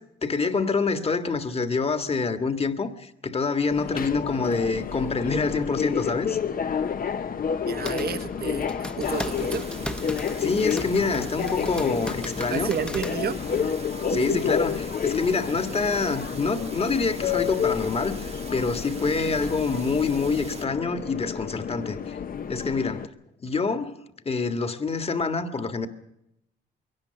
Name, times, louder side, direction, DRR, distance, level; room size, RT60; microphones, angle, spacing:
voice 1, 0.2-6.4 10.4-12.7 14.1-22.2 22.5-23.0 23.4-23.9 24.3-25.9, left 4 dB, 30° left, 1.7 m, -26 dB
Subway metro underground, 3.7-23.1, left 7 dB, 45° left, 0.9 m, -30 dB
sound 1, 7.5-13.7, equal, 5° left, 1.0 m, -38 dB
voice 2, 7.6-9.7 12.5-13.7 14.1-14.4, right 7 dB, 50° right, 1.3 m, -31 dB
sound 2, 9.0-20.7, right 4 dB, 30° right, 1.3 m, -42 dB
22.5 x 18.0 x 6.9 m
cardioid pair, 90°, 20 cm